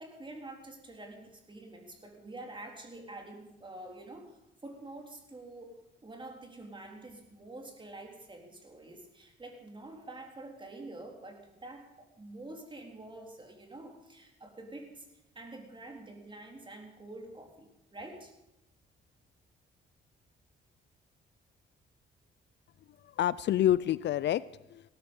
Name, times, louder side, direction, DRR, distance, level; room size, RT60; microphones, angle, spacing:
voice 1, 0.0-18.3, right 2 dB, 25° right, 2 dB, 3.8 m, -47 dB
voice 2, 23.0-24.9, left 12 dB, 60° left, 19 dB, 0.4 m, -28 dB
17.5 x 13.5 x 5.5 m, 0.92 s
cardioid pair, 90°, 20 cm